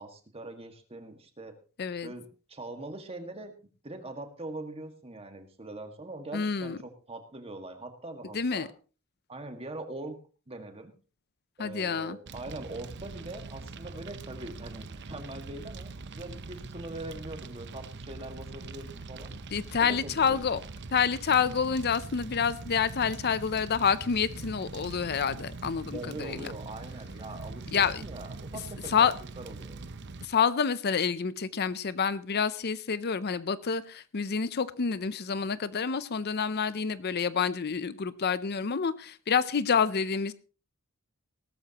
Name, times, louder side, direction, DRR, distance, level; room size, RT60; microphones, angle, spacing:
voice 1, 0.0-1.6 2.0-3.5 3.8-8.7 9.3-10.2 10.5-10.9 11.6-19.3 19.8-20.6 25.9-29.8, right 2 dB, 30° right, 6 dB, 1.9 m, -42 dB
voice 2, 1.8-2.1 6.3-6.8 8.3-8.7 11.6-12.2 19.5-20.6 20.9-26.5 27.7-28.0 28.9-29.1 30.2-40.3, left 6 dB, 50° left, 16 dB, 0.6 m, -28 dB
Fire, 12.3-30.3, right 3 dB, 55° right, 0.8 m, -43 dB
18.0 x 13.5 x 3.0 m, 0.35 s
head